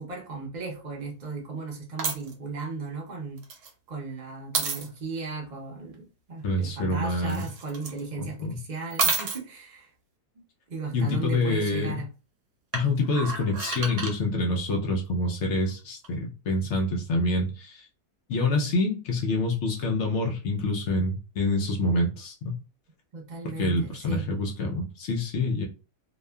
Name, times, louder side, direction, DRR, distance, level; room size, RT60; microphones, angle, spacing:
voice 1, 0.0-9.9 10.7-12.1 23.1-24.3, right 4 dB, 40° right, 0.7 m, -36 dB
sound 1, 2.0-2.3 3.4-3.7 4.5-4.9 7.3-8.0 8.9-9.4 12.7-14.1 16.0-16.1, right 4 dB, 90° right, 1.3 m, -29 dB
voice 2, 6.4-7.5 8.2-8.5 10.9-12.0 12.7-17.8 18.3-22.6 23.6-25.7, left 2 dB, 65° left, 0.7 m, -26 dB
2.8 x 2.3 x 2.2 m
omnidirectional pair, 1.7 m